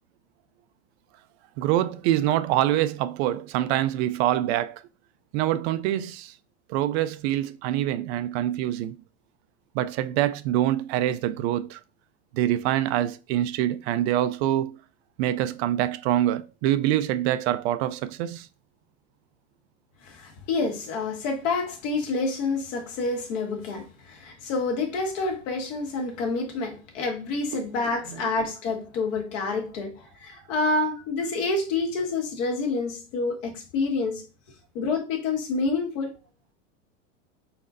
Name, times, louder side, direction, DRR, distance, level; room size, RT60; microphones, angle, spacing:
voice 1, 1.6-4.8 5.3-6.3 6.7-9.0 9.7-11.8 12.3-14.8 15.2-18.5 27.5-27.6 28.1-28.2, right 13 dB, 55° right, 0.5 m, -25 dB
voice 2, 20.0-34.3 34.8-36.1, left 3 dB, 65° left, 1.7 m, -28 dB
4.3 x 4.2 x 2.6 m
hypercardioid pair, 110°, 40 cm